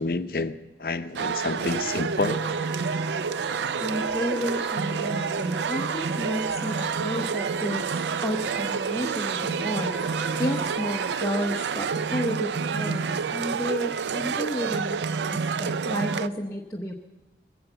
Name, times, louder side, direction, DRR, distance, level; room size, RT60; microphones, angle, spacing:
voice 1, 0.0-2.4, left 3 dB, 55° left, 10 dB, 0.6 m, -29 dB
sound 1, 1.2-16.3, right 6 dB, 80° right, 0.4 m, -28 dB
Wind instrument woodwind instrument, 2.2-11.2, equal, 30° left, 1.2 m, -40 dB
voice 2, 3.8-16.9, equal, 15° left, 1 dB, 0.7 m, -32 dB
21.0 x 7.9 x 7.9 m, 1.2 s
head